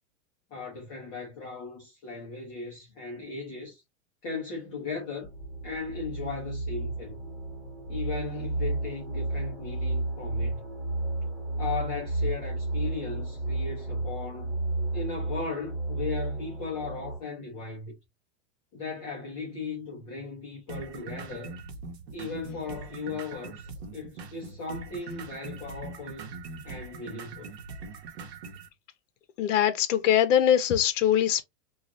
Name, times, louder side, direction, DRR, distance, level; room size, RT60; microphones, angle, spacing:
voice 1, 0.5-3.8 4.2-5.3 5.6-7.2 7.9-10.6 11.6-14.5 14.9-18.0 18.7-21.5 22.1-26.2 26.6-27.5, left 4 dB, 25° left, 0.6 m, -37 dB
sound 1, 5.2-17.2, right 2 dB, ahead, 1.7 m, -32 dB
sound 2, 20.7-28.7, right 4 dB, 60° right, 0.9 m, -42 dB
voice 2, 29.4-31.4, left 10 dB, 85° left, 0.7 m, -22 dB
3.1 x 2.3 x 2.5 m
supercardioid pair, 175°, 37 cm